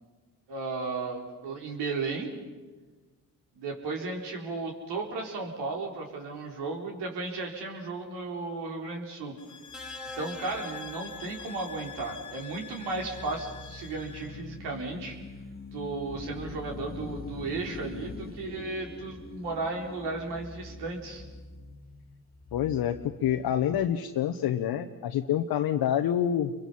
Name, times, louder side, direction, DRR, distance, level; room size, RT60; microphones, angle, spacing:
voice 1, 0.5-2.3 3.5-9.3 10.1-15.2 15.7-21.2, right 3 dB, 75° right, 1 dB, 4.4 m, -35 dB
sound 1, 9.4-14.4, left 6 dB, 45° left, 1.5 m, -45 dB
sound 2, 9.7-12.0 13.3-13.5, left 1 dB, ahead, 1.1 m, -46 dB
sound 3, 9.8-23.9, left 3 dB, 20° left, 2.4 m, -44 dB
voice 2, 22.5-26.5, left 10 dB, 65° left, 4 dB, 1.2 m, -27 dB
29.0 x 23.5 x 5.8 m, 1.3 s
hypercardioid pair, 60°, 41 cm